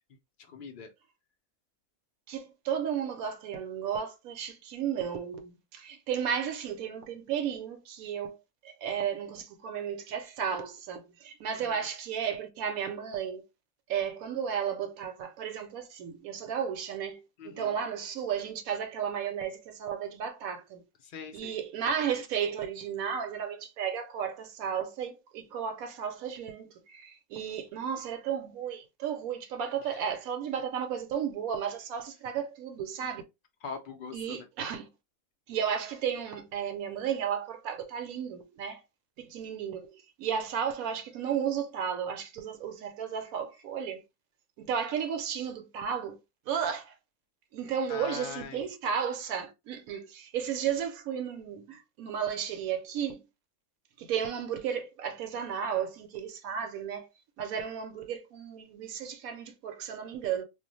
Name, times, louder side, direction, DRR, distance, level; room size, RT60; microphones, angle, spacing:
voice 1, 0.5-0.9 11.6-11.8 17.4-17.7 21.0-21.5 29.8-30.1 33.6-34.5 47.9-48.7, left 6 dB, 75° left, 0.4 m, -42 dB
voice 2, 2.3-8.4 8.6-13.4 13.9-20.8 21.3-33.2 34.1-34.9 35.5-38.8 39.2-44.0 44.6-46.2 46.5-46.9 47.5-53.2 54.0-57.1 57.4-60.4, right 8 dB, 75° right, 1.0 m, -34 dB
2.4 x 2.1 x 3.8 m
omnidirectional pair, 1.5 m